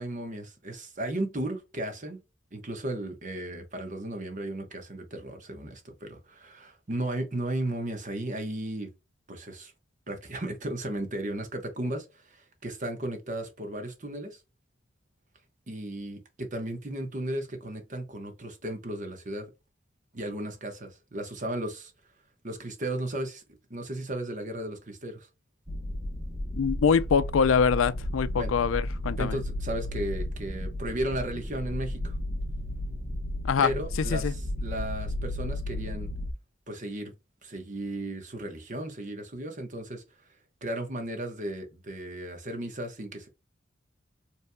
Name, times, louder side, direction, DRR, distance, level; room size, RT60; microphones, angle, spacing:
voice 1, 0.0-2.2 2.5-8.9 9.3-9.7 10.1-14.4 15.7-19.5 20.1-21.9 22.4-23.4 23.7-25.3 28.4-28.5 29.2-32.1 33.6-36.1 36.7-37.1 37.4-40.0 40.6-43.3, right 1 dB, 40° right, 1.1 m, -35 dB
sound 1, 25.7-36.3, left 1 dB, 25° right, 1.4 m, -33 dB
voice 2, 26.5-29.4 33.4-33.7 34.0-34.3, left 6 dB, 85° left, 0.4 m, -24 dB
5.4 x 3.3 x 2.2 m
head